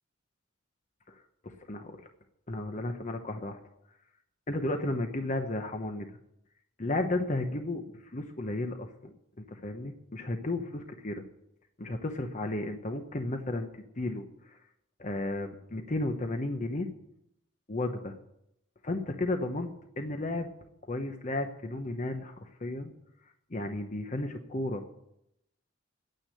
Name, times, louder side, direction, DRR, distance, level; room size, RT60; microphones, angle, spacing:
voice 1, 1.1-2.1 2.5-3.6 4.5-6.1 6.8-11.2 11.8-14.6 15.0-16.9 17.7-18.2 18.8-19.7 20.0-20.5 20.9-22.9 23.5-24.9, left 2 dB, 40° left, 5 dB, 1.0 m, -33 dB
9.5 x 9.2 x 10.0 m, 0.80 s
head